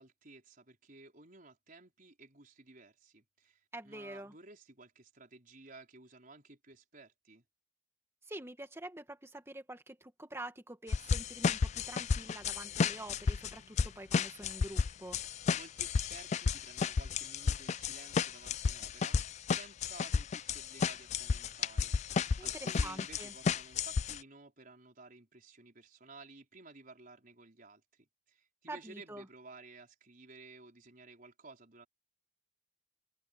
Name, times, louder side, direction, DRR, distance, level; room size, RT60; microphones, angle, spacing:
voice 1, 0.0-7.4 15.5-31.9, right 3 dB, 45° right, 5.2 m, -55 dB
voice 2, 3.7-4.3 8.3-15.2 22.4-23.3 28.7-29.3, right 1 dB, 15° right, 2.1 m, -46 dB
sound 1, 10.9-24.2, left 5 dB, 35° left, 0.3 m, -32 dB
open air
head